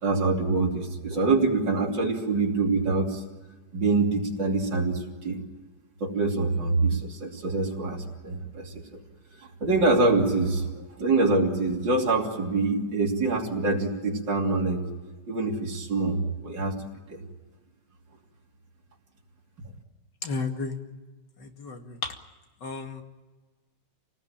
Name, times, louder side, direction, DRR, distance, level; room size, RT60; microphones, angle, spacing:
voice 1, 0.0-3.2 3.7-5.4 6.0-9.0 9.6-14.8 15.3-16.8 17.1-17.2, right 3 dB, 80° right, -2 dB, 3.7 m, -25 dB
voice 2, 20.2-20.8 21.4-22.1 22.6-23.0, left 4 dB, 70° left, 4 dB, 2.9 m, -33 dB
28.0 x 19.0 x 8.9 m, 1.3 s
omnidirectional pair, 2.0 m